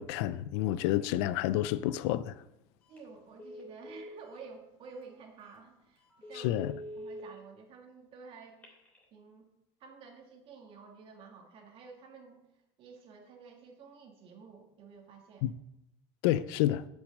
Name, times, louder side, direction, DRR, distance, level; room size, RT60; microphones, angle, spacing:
voice 1, 0.0-2.4 6.4-6.7 15.4-15.5 16.2-16.9, left 13 dB, 80° left, 0.4 m, -29 dB
Telephone, 2.8-3.1 3.4-4.5 5.0-5.1 5.5-5.6 6.1-7.2 8.4-9.0, equal, 10° left, 3.1 m, -45 dB
voice 2, 2.9-6.6 7.0-8.6 9.1-9.5 9.8-12.4 12.8-15.5, right 5 dB, 40° right, 2.0 m, -51 dB
8.2 x 6.3 x 6.4 m
cardioid pair, 155°, 14 cm